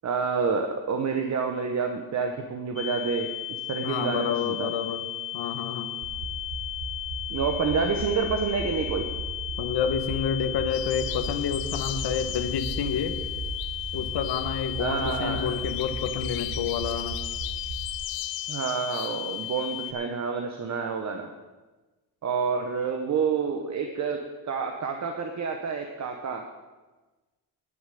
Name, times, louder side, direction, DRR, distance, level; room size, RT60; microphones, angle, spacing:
voice 1, 0.0-4.7 7.3-9.1 14.8-15.5 18.5-21.3 22.2-24.2 24.4-26.5, right 5 dB, 45° right, 4 dB, 0.9 m, -28 dB
sound 1, 2.8-19.9, left 14 dB, 40° left, 1.0 m, -35 dB
voice 2, 3.8-5.0 5.3-5.9 9.6-13.2 13.9-17.2, left 7 dB, 85° left, 8 dB, 1.3 m, -29 dB
sound 2, 6.0-18.0, right 2 dB, 85° right, 2.9 m, -36 dB
sound 3, 10.7-19.9, left 11 dB, 65° left, 0.7 m, -41 dB
10.0 x 7.2 x 9.1 m, 1.2 s
cardioid pair, 170°, 39 cm